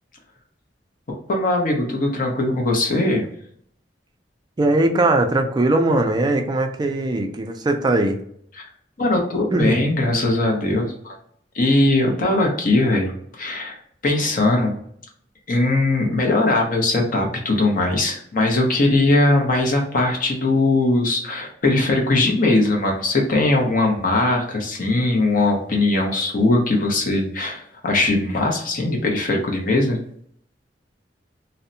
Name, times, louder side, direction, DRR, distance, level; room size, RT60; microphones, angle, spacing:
voice 1, 1.3-3.2 9.0-11.2 11.5-13.1 13.4-13.8 14.0-14.7 15.5-30.0, left 2 dB, 45° left, 1 dB, 0.7 m, -20 dB
voice 2, 4.6-8.2 9.5-9.9, right 2 dB, 25° right, 4 dB, 0.3 m, -20 dB
2.6 x 2.1 x 2.6 m, 0.66 s
head